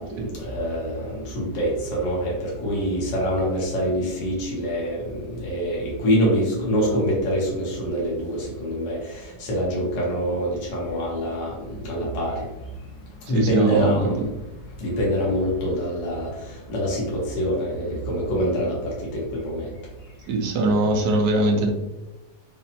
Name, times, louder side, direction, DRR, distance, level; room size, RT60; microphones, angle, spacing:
voice 1, 0.0-12.4 13.3-14.3 14.8-19.7, equal, 85° left, -4 dB, 1.6 m, -25 dB
voice 2, 13.3-14.1 20.3-21.7, right 2 dB, 75° right, 2 dB, 1.2 m, -22 dB
5.5 x 2.0 x 2.8 m, 1.0 s
omnidirectional pair, 1.8 m